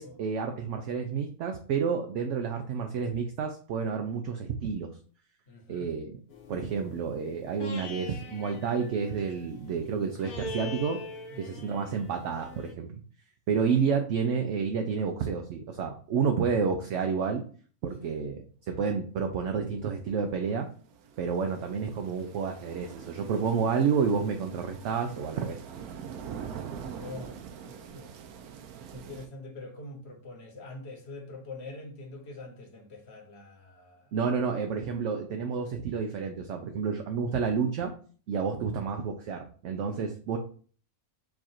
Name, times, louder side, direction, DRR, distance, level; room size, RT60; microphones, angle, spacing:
voice 1, 0.0-5.0 5.7-6.2 6.5-11.0 11.4-13.0 13.5-17.4 17.8-20.7 21.2-25.6 34.1-37.9 38.3-40.4, right 6 dB, 65° right, 0.8 m, -30 dB
voice 2, 5.5-6.0 11.3-11.7 18.0-18.3 26.8-28.2 28.9-34.4, left 2 dB, 50° left, 1.1 m, -45 dB
sound 1, 6.3-12.7, left 3 dB, 80° left, 1.5 m, -43 dB
sound 2, 20.3-29.3, right 7 dB, 85° right, 1.1 m, -44 dB
4.6 x 2.4 x 4.3 m
omnidirectional pair, 1.6 m